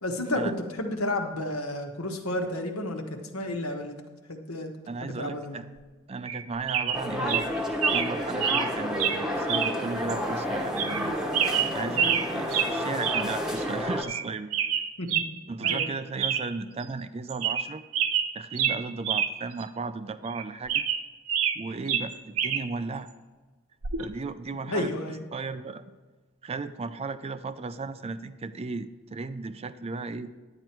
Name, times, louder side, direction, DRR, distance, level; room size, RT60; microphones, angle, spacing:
voice 1, 0.0-0.5 0.8-4.0 4.3-4.7 5.0-5.6 15.0-15.2 15.6-15.9 24.7-25.2, left 1 dB, 75° left, 4 dB, 1.3 m, -31 dB
voice 2, 4.9-5.6 6.1-11.2 11.7-14.5 15.5-17.8 18.3-20.9 21.6-23.1 24.0-24.9 25.3-25.8 26.4-30.3, right 4 dB, 30° right, 12 dB, 0.4 m, -35 dB
sound 1, 6.2-6.4 6.7-7.0 7.3-7.4 7.8-8.1 8.4-8.7 9.0-9.2 9.5-9.7 10.1-10.2 10.8-11.0 11.3-12.3 12.5-12.7 13.0-13.3 13.6-13.7 14.0-14.2 14.5-15.3 15.6-15.9 16.2-16.4 16.8-16.9 17.3-17.7 17.9-19.3 19.6-19.7 20.3-21.6 21.9-22.6 23.8-24.0, right 8 dB, 70° right, 0.7 m, -27 dB
sound 2, 6.9-14.0, left 1 dB, ahead, 1.0 m, -30 dB
10.5 x 9.0 x 4.5 m, 1.3 s
head